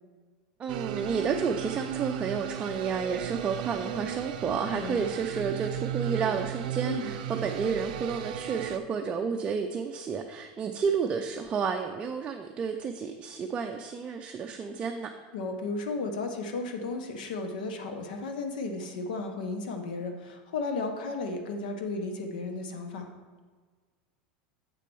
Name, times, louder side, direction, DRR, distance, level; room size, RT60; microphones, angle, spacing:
voice 1, 0.6-15.1, right 6 dB, 25° right, 4 dB, 0.4 m, -31 dB
sound 1, 0.7-8.8, right 11 dB, 85° right, 0.5 m, -35 dB
voice 2, 4.7-5.1 6.8-7.1 15.3-23.1, left 3 dB, 90° left, 5 dB, 1.0 m, -34 dB
7.5 x 4.3 x 5.4 m, 1.5 s
supercardioid pair, 140°, 5 cm